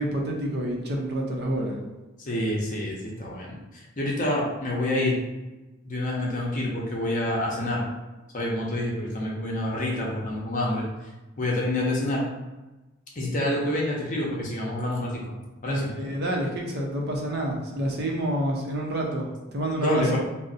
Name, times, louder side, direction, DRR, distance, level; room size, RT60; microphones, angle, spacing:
voice 1, 0.0-1.7 15.7-20.2, right 1 dB, 50° right, -1 dB, 0.6 m, -28 dB
voice 2, 2.2-5.2 5.8-7.8 8.3-10.8 11.4-12.2 13.2-15.3 15.6-15.9 19.8-20.2, left 1 dB, 40° left, -3 dB, 0.7 m, -27 dB
2.6 x 2.0 x 3.8 m, 1.1 s
head